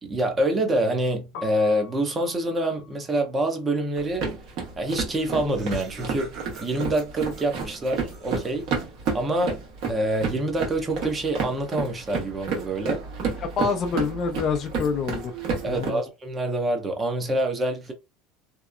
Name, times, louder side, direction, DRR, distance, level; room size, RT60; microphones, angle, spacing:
voice 1, 0.0-4.3 4.8-6.3 6.6-8.6 9.1-9.6 9.9-13.0 15.6-17.9, right 1 dB, 25° right, 0.7 m, -26 dB
Piano, 1.2-7.2 7.4-9.0 9.3-15.7, left 7 dB, 80° left, 0.7 m, -49 dB
sound 1, 4.0-15.9, right 5 dB, 65° right, 1.1 m, -31 dB
Laughter, 5.3-8.9, right 3 dB, 45° right, 1.0 m, -46 dB
voice 2, 13.4-15.3 15.7-16.0, left 5 dB, 45° left, 0.4 m, -26 dB
2.8 x 2.0 x 2.4 m
supercardioid pair, 110°, 0 cm